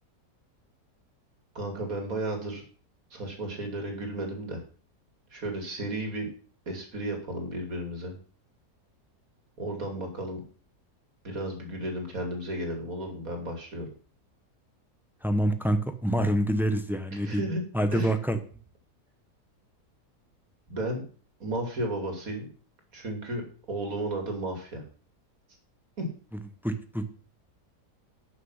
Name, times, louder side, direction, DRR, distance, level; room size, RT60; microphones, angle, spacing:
voice 1, 1.5-2.6 3.1-4.6 5.3-6.3 6.7-8.2 9.6-10.4 11.2-13.9 17.2-17.6 17.9-18.1 20.7-21.0 21.4-22.5 22.9-24.8 26.0-26.1, right 1 dB, 60° right, 3 dB, 3.1 m, -33 dB
voice 2, 15.2-17.5 17.7-18.4 26.3-27.1, right 1 dB, ahead, 8 dB, 0.8 m, -27 dB
12.0 x 6.6 x 5.7 m, 0.41 s
omnidirectional pair, 1.7 m